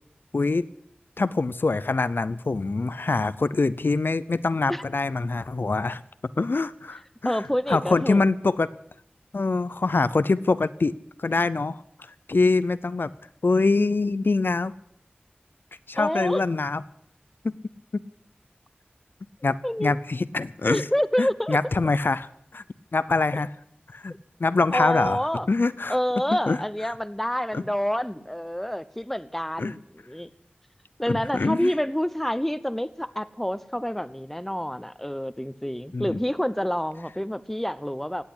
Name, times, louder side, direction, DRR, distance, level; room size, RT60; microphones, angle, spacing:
voice 1, 0.3-0.7 1.2-6.0 6.4-7.4 7.7-8.7 9.3-13.1 13.4-14.7 15.9-16.8 17.4-17.5 17.9-18.0 19.4-20.8 21.2-22.6 22.9-23.5 23.9-24.1 24.4-25.2 25.5-26.0 26.5-26.6 27.5-27.6 29.6-29.7 31.1-31.7 35.9-36.2, left 3 dB, 75° left, 15 dB, 0.5 m, -24 dB
voice 2, 7.2-8.2 16.0-16.4 19.6-20.0 20.7-21.6 24.7-25.5 25.9-29.8 30.1-30.3 31.0-38.2, equal, 5° left, 14 dB, 0.8 m, -27 dB
17.0 x 8.4 x 9.9 m, 0.71 s
wide cardioid pair, 50°, 4 cm